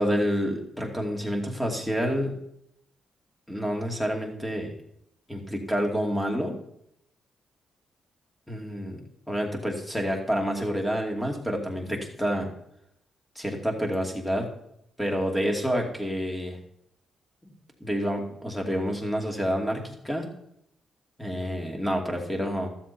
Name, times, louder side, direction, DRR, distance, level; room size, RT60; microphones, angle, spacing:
voice 1, 0.0-2.4 3.5-4.7 5.3-6.5 8.5-9.0 9.3-12.5 13.4-14.5 15.0-16.6 17.4-17.5 17.8-20.3 21.2-22.7, equal, 10° left, 2 dB, 2.6 m, -28 dB
13.0 x 7.4 x 4.4 m, 0.75 s
cardioid pair, 60°, 0 cm